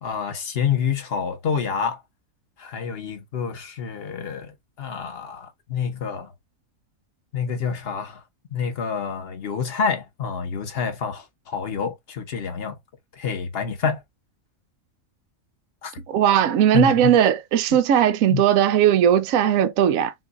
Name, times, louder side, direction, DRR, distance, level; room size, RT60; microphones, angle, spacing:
voice 1, 0.0-2.0 2.6-6.3 7.3-8.2 8.5-12.8 13.1-14.0 15.8-15.9 16.7-17.2 18.3-18.4, left 6 dB, 50° left, 1.1 m, -27 dB
voice 2, 16.1-20.1, right 10 dB, 75° right, 1.0 m, -18 dB
6.1 x 2.4 x 2.5 m
omnidirectional pair, 1.5 m